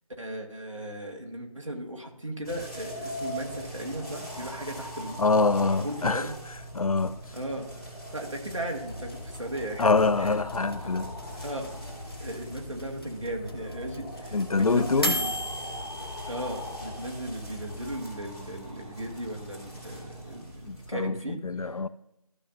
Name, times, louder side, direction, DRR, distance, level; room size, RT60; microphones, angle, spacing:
voice 1, 0.2-5.2 5.5-6.3 7.3-7.7 8.1-9.9 10.2-10.3 10.6-10.9 11.4-15.3 16.3-21.7, right 1 dB, 55° right, 1.8 m, -37 dB
sound 1, 2.4-20.9, equal, ahead, 1.6 m, -41 dB
voice 2, 5.2-6.3 6.7-7.2 9.8-11.1 14.3-15.2 20.7-21.9, left 3 dB, 70° left, 0.4 m, -25 dB
sound 2, 8.9-18.0, left 1 dB, 40° left, 1.2 m, -38 dB
14.0 x 7.1 x 2.7 m
figure-of-eight pair, 170°, 19 cm